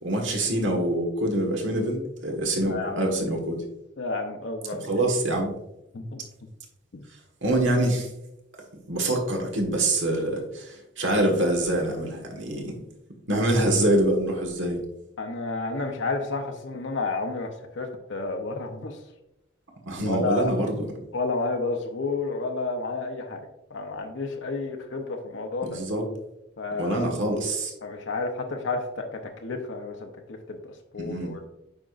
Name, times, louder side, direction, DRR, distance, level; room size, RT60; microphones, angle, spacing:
voice 1, 0.0-3.6 4.7-5.5 7.4-8.1 8.9-12.7 13.3-14.8 19.9-20.9 25.6-26.0 26.8-27.7 31.0-31.3, right 1 dB, 85° right, 2 dB, 1.6 m, -25 dB
voice 2, 2.7-3.1 4.0-4.8 5.9-6.2 6.9-7.0 15.2-19.0 20.0-20.6 21.1-23.4 23.7-25.8 26.6-27.1 27.8-31.5, left 3 dB, 75° left, 3 dB, 0.7 m, -31 dB
8.8 x 5.0 x 2.5 m, 0.88 s
head